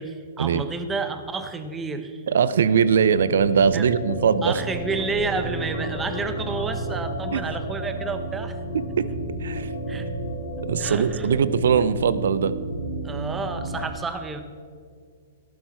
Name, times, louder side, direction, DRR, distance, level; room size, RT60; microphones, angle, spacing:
voice 1, 0.0-2.2 3.7-3.9 4.4-8.6 9.9-10.1 10.8-11.3 13.0-14.4, right 4 dB, 15° right, 8 dB, 1.2 m, -30 dB
voice 2, 2.3-4.6 7.3-7.4 8.7-9.1 9.4-9.7 10.7-12.5, right 7 dB, 75° right, 16 dB, 0.7 m, -21 dB
sound 1, 2.5-13.9, right 1 dB, 75° left, 3.8 m, -32 dB
14.5 x 12.0 x 4.6 m, 2.2 s
hypercardioid pair, 125°, 0 cm